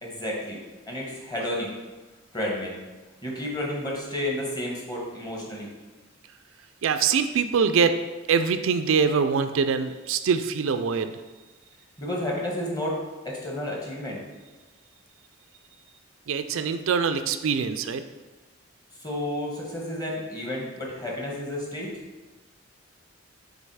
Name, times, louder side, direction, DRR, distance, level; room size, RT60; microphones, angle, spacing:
voice 1, 0.0-0.6 0.9-1.7 2.3-2.8 3.2-5.7 12.0-13.0 13.2-14.2 19.0-21.9, left 1 dB, 20° left, -2 dB, 1.3 m, -31 dB
voice 2, 6.8-7.9 8.3-11.1 16.3-18.0, right 6 dB, 80° right, 9 dB, 0.4 m, -23 dB
5.5 x 3.8 x 4.8 m, 1.2 s
head